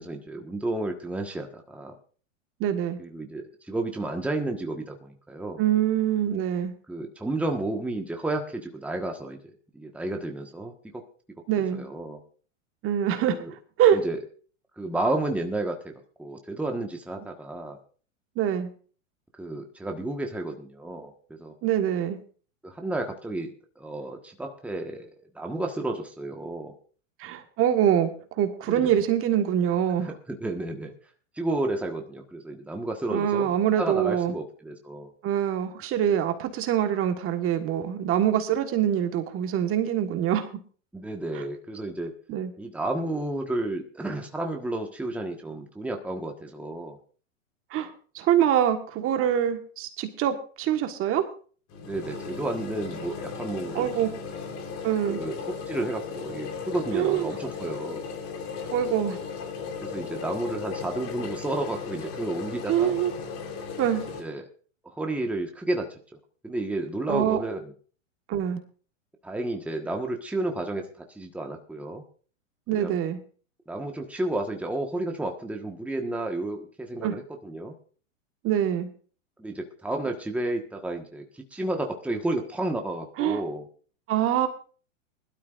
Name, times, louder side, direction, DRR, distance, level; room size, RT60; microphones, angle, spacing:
voice 1, 0.0-1.9 3.0-5.6 6.9-9.4 9.7-11.0 11.7-12.2 13.3-13.5 13.9-14.2 14.8-15.9 16.2-17.8 19.4-21.5 22.6-23.5 23.8-26.7 28.7-28.9 30.1-30.9 31.4-35.1 40.9-42.1 42.6-47.0 51.8-53.9 55.1-58.0 59.8-63.0 64.2-64.5 64.8-65.9 66.4-67.7 69.2-72.0 72.7-73.0 73.7-77.7 79.4-83.6, right 2 dB, 5° right, 3 dB, 1.4 m, -32 dB
voice 2, 2.6-3.0 5.6-6.7 11.5-11.8 12.8-14.0 18.4-18.7 21.6-22.2 27.2-28.1 28.4-30.1 33.1-34.3 35.2-40.5 42.3-42.5 47.7-47.9 48.1-51.2 53.7-54.1 54.8-55.2 56.9-57.3 58.7-59.2 62.7-63.1 63.8-64.0 67.1-67.4 68.3-68.6 72.7-73.2 77.0-77.1 78.4-78.9 83.2-83.4 84.1-84.5, right 10 dB, 35° right, 7 dB, 1.5 m, -24 dB
sound 1, 51.7-64.2, left 5 dB, 40° left, 3.8 m, -36 dB
21.0 x 12.5 x 2.5 m, 0.41 s
hypercardioid pair, 115°, 39 cm